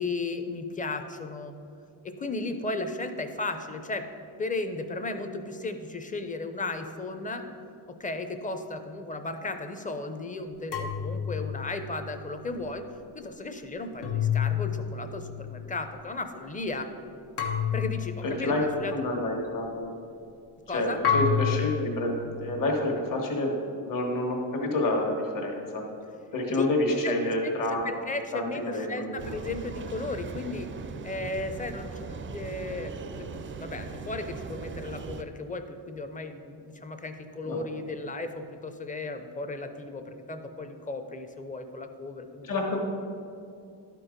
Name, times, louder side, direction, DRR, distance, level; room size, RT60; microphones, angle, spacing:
voice 1, 0.0-1.5 2.0-4.0 4.4-7.4 7.9-12.8 13.1-16.9 17.7-18.9 20.7-21.0 26.6-26.7 27.0-27.1 27.4-30.7 31.0-42.5, left 3 dB, 20° left, 7 dB, 0.5 m, -35 dB
sound 1, 10.7-12.1 14.0-15.1 17.4-18.4 21.0-22.1, left 8 dB, 85° left, 1.1 m, -28 dB
voice 2, 18.2-18.6 18.9-20.0 20.7-23.5 23.8-25.8 26.3-27.9 28.3-29.2 37.5-37.6 42.4-42.8, left 1 dB, 55° left, 0 dB, 1.4 m, -28 dB
sound 2, 29.2-35.2, right 5 dB, 30° right, 0.4 m, -39 dB
11.5 x 4.6 x 5.1 m, 2.5 s
cardioid pair, 125°, 40 cm